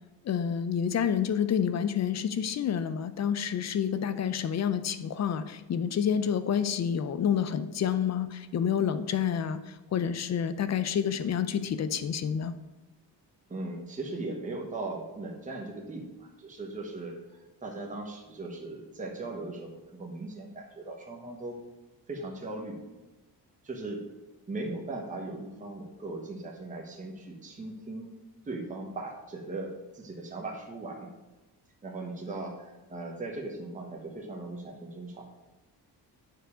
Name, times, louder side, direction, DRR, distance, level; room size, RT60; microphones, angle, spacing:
voice 1, 0.3-9.6 9.9-12.5, left 8 dB, 40° left, 11 dB, 0.5 m, -28 dB
voice 2, 13.5-21.6 22.1-22.8 23.6-24.0 24.5-28.1 28.4-31.1 31.8-35.2, right 2 dB, 20° right, 0 dB, 1.1 m, -38 dB
9.2 x 4.9 x 5.0 m, 1.1 s
cardioid pair, 165°, 41 cm